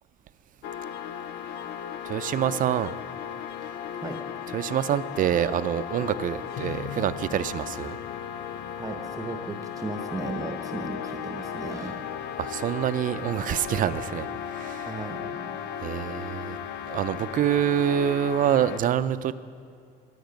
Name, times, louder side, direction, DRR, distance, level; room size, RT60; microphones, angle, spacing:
sound 1, 0.6-18.8, left 9 dB, 80° left, 0.5 m, -36 dB
voice 1, 2.0-2.9 4.5-8.0 12.4-14.9 15.8-16.6 16.9-19.3, right 10 dB, 55° right, 14 dB, 0.5 m, -26 dB
voice 2, 8.8-12.0 14.9-15.9, right 3 dB, 20° right, 5 dB, 0.8 m, -36 dB
18.5 x 8.0 x 5.2 m, 2.3 s
cardioid pair, 110°, 17 cm